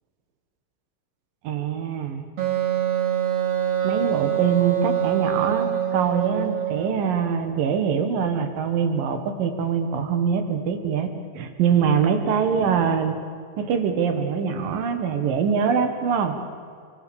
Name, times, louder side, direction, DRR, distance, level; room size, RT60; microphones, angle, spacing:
voice 1, 1.4-2.2 3.8-11.1 11.3-13.2 13.6-16.4, right 7 dB, 85° right, 7 dB, 3.3 m, -23 dB
Wind instrument woodwind instrument, 2.4-7.0, right 10 dB, 60° right, 3.0 m, -24 dB
27.0 x 23.5 x 7.0 m, 2.2 s
omnidirectional pair, 3.8 m